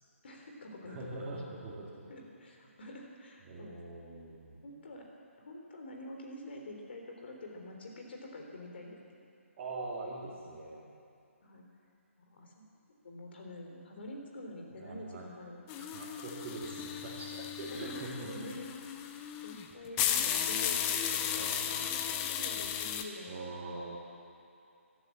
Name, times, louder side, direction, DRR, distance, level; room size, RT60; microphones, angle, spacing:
voice 1, 0.2-1.4 2.1-3.8 4.6-5.1 5.4-9.0 11.4-11.7 12.2-12.7 13.0-15.9 17.7-18.9 19.4-23.9, left 1 dB, 50° left, 1 dB, 3.6 m, -47 dB
voice 2, 0.8-2.1 3.5-4.6 9.6-10.8 14.7-15.3 15.8-18.5 21.3-21.8 23.3-24.0, right 2 dB, 25° right, -7 dB, 2.6 m, -43 dB
sound 1, 15.7-23.0, left 9 dB, 20° left, 0.7 m, -34 dB
15.0 x 12.5 x 7.6 m, 2.6 s
figure-of-eight pair, 145°, 8 cm